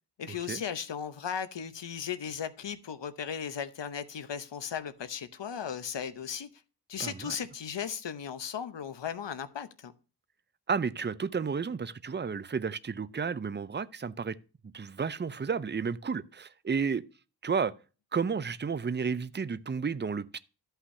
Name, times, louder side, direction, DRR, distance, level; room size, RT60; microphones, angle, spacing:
voice 1, 0.2-6.5 6.9-9.9, left 7 dB, 85° left, 0.8 m, -36 dB
voice 2, 7.0-7.4 10.7-14.4 14.7-17.0 17.4-17.7 18.1-20.4, right 5 dB, 25° right, 0.5 m, -32 dB
13.0 x 5.7 x 2.7 m
cardioid pair, 45°, 42 cm